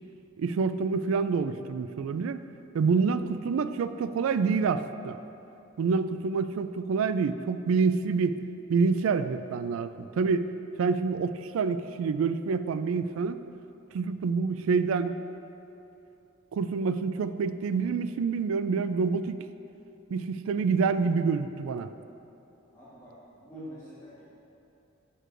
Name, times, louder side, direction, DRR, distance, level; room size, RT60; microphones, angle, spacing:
voice 1, 0.4-2.4 2.7-5.2 5.8-8.4 8.7-10.5 10.8-13.4 13.9-15.2 16.5-19.5 20.1-21.9, right 5 dB, 85° right, 11 dB, 0.3 m, -27 dB
voice 2, 22.7-23.1 23.4-24.2, equal, 15° left, -12 dB, 1.4 m, -45 dB
11.0 x 6.6 x 2.5 m, 2.9 s
head